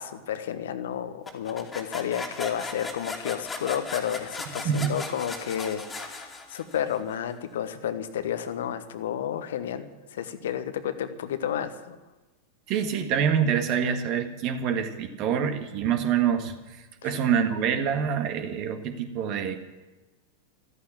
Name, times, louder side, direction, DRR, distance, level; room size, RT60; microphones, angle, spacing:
voice 1, 0.0-12.0 17.0-17.2, left 9 dB, 60° left, 10 dB, 1.2 m, -31 dB
sound 1, 1.3-6.9, left 3 dB, 10° left, 2.6 m, -37 dB
voice 2, 12.7-19.6, right 8 dB, 40° right, 7 dB, 1.8 m, -26 dB
14.0 x 13.5 x 7.3 m, 1.1 s
figure-of-eight pair, 90°, 0 cm